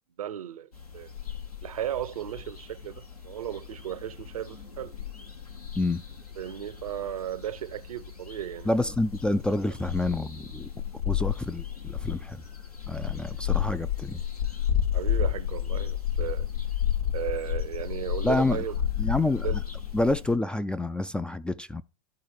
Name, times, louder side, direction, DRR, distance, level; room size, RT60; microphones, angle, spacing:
voice 1, 0.2-1.1 1.6-4.9 6.4-8.7 14.9-16.5 17.1-18.8 19.4-19.6, right 11 dB, 70° right, 0.7 m, -35 dB
sound 1, 0.7-20.3, left 10 dB, 85° left, 2.0 m, -32 dB
voice 2, 8.6-10.7 11.1-12.4 12.9-14.2 18.2-18.6 19.0-19.6 19.9-21.8, left 2 dB, 5° left, 0.3 m, -28 dB
12.5 x 4.2 x 4.5 m
figure-of-eight pair, 85°, 19 cm